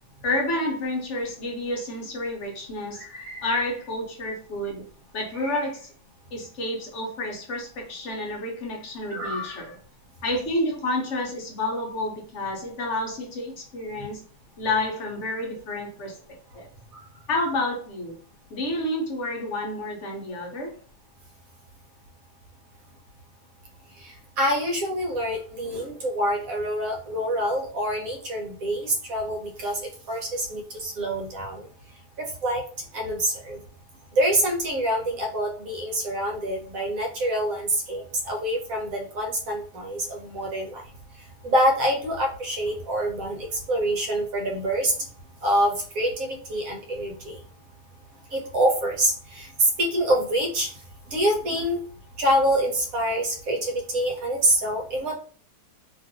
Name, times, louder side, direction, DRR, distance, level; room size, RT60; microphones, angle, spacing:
voice 1, 0.2-4.9 5.1-5.9 6.3-9.8 10.2-14.2 14.6-16.2 16.5-16.7 17.3-18.2 18.5-20.8, left 1 dB, 50° left, 0 dB, 1.0 m, -29 dB
voice 2, 9.1-9.5 24.4-29.8 30.1-31.7 32.4-32.6 32.9-33.6 34.2-40.8 41.4-43.4 43.7-44.9 45.4-47.4 48.3-50.7 51.1-51.8 52.2-55.2, right 1 dB, 65° right, 1 dB, 1.2 m, -26 dB
2.9 x 2.6 x 2.8 m, 0.42 s
omnidirectional pair, 1.7 m